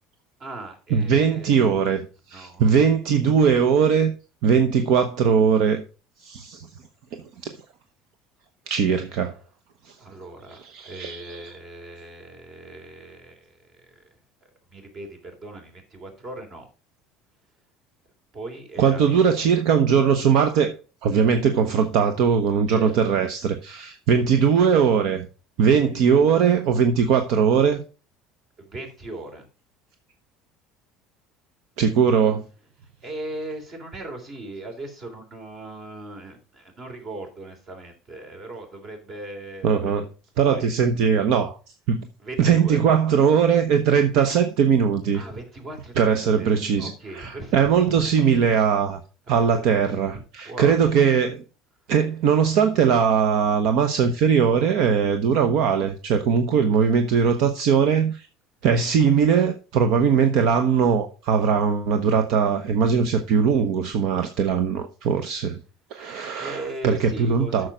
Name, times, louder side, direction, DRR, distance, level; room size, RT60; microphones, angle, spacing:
voice 1, 0.4-1.7 2.3-2.7 10.0-14.2 14.7-16.7 18.3-19.2 22.7-23.2 28.6-29.4 33.0-39.9 40.4-40.7 42.2-42.8 45.1-46.5 46.8-48.0 49.4-49.8 50.1-50.9 66.3-67.7, right 2 dB, 40° right, 3.3 m, -38 dB
voice 2, 0.9-4.1 4.4-5.8 6.2-6.7 7.1-7.5 8.7-9.4 9.8-9.9 10.5-11.6 18.8-20.7 21.0-25.3 25.6-27.8 31.8-32.4 39.6-40.1 40.4-41.6 41.9-42.1 42.4-45.2 46.0-49.0 49.3-51.4 51.9-58.3 58.6-65.6 65.9-67.7, right 6 dB, 70° right, 0.9 m, -20 dB
8.8 x 6.4 x 5.0 m
supercardioid pair, 120°, 0 cm